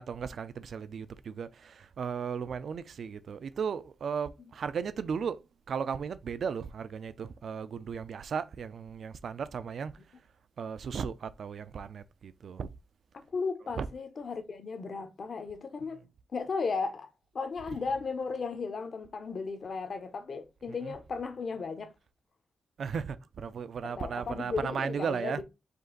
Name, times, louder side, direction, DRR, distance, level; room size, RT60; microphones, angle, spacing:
voice 1, 0.0-5.4 5.7-9.9 10.6-12.7 13.8-13.9 20.8-21.0 22.8-25.4, right 6 dB, 65° right, 0.4 m, -35 dB
voice 2, 13.1-16.0 16.3-17.1 17.3-21.9 23.8-25.4, left 4 dB, 50° left, 0.8 m, -35 dB
5.3 x 2.5 x 3.8 m
wide cardioid pair, 140°, 0 cm